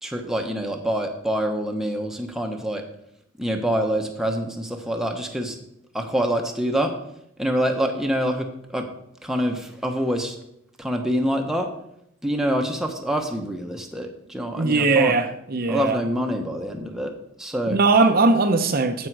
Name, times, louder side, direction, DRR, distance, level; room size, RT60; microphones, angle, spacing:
voice 1, 0.0-2.8 3.4-5.6 5.9-6.9 7.4-8.9 9.2-10.4 10.8-11.7 12.2-15.1 15.7-17.1 17.4-17.8, equal, ahead, 0.9 m, -26 dB
voice 2, 14.5-16.0 17.7-19.1, right 3 dB, 45° right, 0.7 m, -19 dB
14.0 x 5.3 x 4.7 m
head